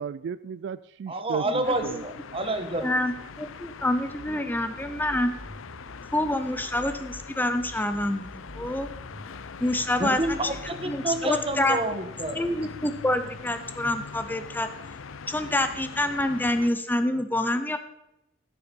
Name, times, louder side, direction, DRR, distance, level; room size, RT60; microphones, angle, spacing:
voice 1, 0.0-2.0, right 6 dB, 60° right, 16 dB, 0.3 m, -34 dB
voice 2, 1.1-2.9 10.0-10.5 10.8-12.5, right 1 dB, 30° right, 8 dB, 1.2 m, -28 dB
sound 1, 1.6-16.7, left 5 dB, 85° left, 0.6 m, -42 dB
voice 3, 2.8-5.3 6.1-8.9 9.6-10.4 10.8-11.8 12.3-14.7 15.3-17.8, left 1 dB, 10° left, 9 dB, 0.6 m, -27 dB
sound 2, 4.2-7.2 7.6-10.6, equal, 10° right, 1.4 m, -46 dB
14.5 x 6.8 x 5.3 m, 0.84 s
head